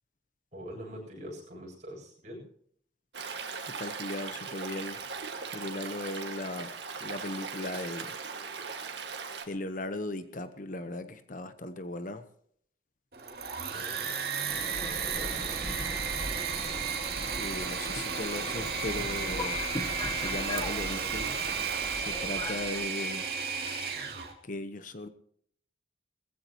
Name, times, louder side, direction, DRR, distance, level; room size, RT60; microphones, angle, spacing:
voice 1, 0.5-2.4 13.7-16.0, equal, 40° right, -2 dB, 8.0 m, -45 dB
Stream, 3.1-9.5, right 5 dB, 75° right, 1.9 m, -39 dB
voice 2, 3.7-5.0 5.5-6.8 7.0-8.1 9.5-12.3 17.3-19.6 20.1-21.4 22.0-23.3 24.4-25.1, left 2 dB, 45° left, 10 dB, 1.0 m, -37 dB
Engine / Mechanisms, 13.1-24.3, right 5 dB, 60° right, 2.5 m, -33 dB
Subway metro underground, 14.5-22.9, left 1 dB, 25° left, 1.2 m, -40 dB
20.5 x 15.0 x 3.0 m, 0.64 s
head